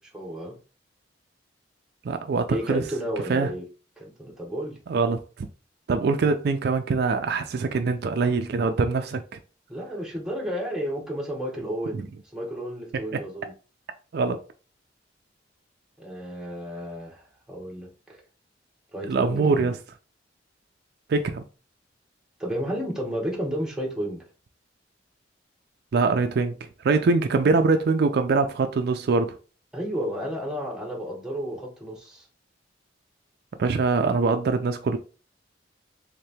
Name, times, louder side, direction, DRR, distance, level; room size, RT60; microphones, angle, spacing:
voice 1, 0.1-0.6 2.5-3.6 4.0-4.8 9.7-12.1 12.3-13.5 16.0-18.2 18.9-19.7 22.4-24.2 29.7-32.3, equal, 5° right, 0.8 m, -32 dB
voice 2, 2.0-2.8 3.3-3.5 4.9-5.5 5.9-9.4 11.9-12.1 13.1-13.2 14.1-14.4 19.1-19.8 21.1-21.4 25.9-26.5 26.8-29.4 33.6-35.0, right 4 dB, 60° right, 0.4 m, -23 dB
3.5 x 2.8 x 3.3 m
head